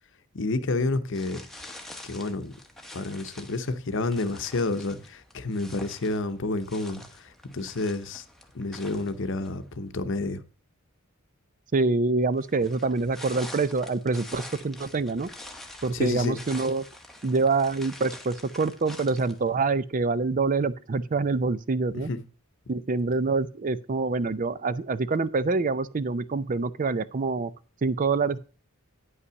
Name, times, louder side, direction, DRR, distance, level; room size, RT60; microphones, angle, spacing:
voice 1, 0.3-1.4 2.0-2.5 2.9-8.2 8.5-10.4 15.9-16.4 22.1-22.2, left 2 dB, 60° left, 0.8 m, -29 dB
sound 1, 1.1-9.8 12.3-19.7, left 1 dB, ahead, 0.9 m, -46 dB
voice 2, 11.7-15.3 15.8-16.8 17.2-22.1 22.7-27.5 27.8-28.4, right 3 dB, 40° right, 0.5 m, -26 dB
9.7 x 5.6 x 6.2 m
head